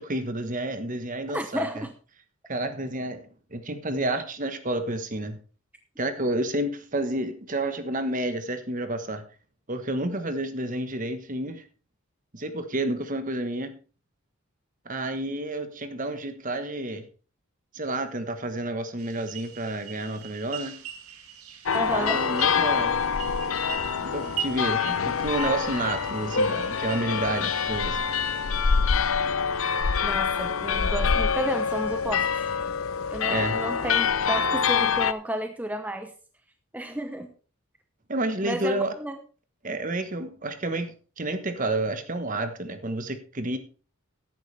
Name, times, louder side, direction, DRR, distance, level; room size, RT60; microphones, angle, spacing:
voice 1, 0.0-1.8 2.5-3.2 3.5-5.4 6.0-9.2 9.7-11.6 12.3-13.8 14.8-17.0 17.7-20.8 21.9-23.0 24.0-28.0 33.3-33.6 38.1-38.9 39.6-43.6, right 1 dB, 35° right, 9 dB, 1.2 m, -30 dB
voice 2, 1.3-1.9 21.7-22.2 30.0-32.3 33.1-36.1 36.7-37.3 38.4-39.2, right 1 dB, 5° right, 6 dB, 0.7 m, -32 dB
sound 1, 19.0-28.8, right 8 dB, 85° right, 1.7 m, -41 dB
sound 2, 21.7-35.1, left 6 dB, 70° left, 0.6 m, -25 dB
14.0 x 11.0 x 3.4 m, 0.37 s
head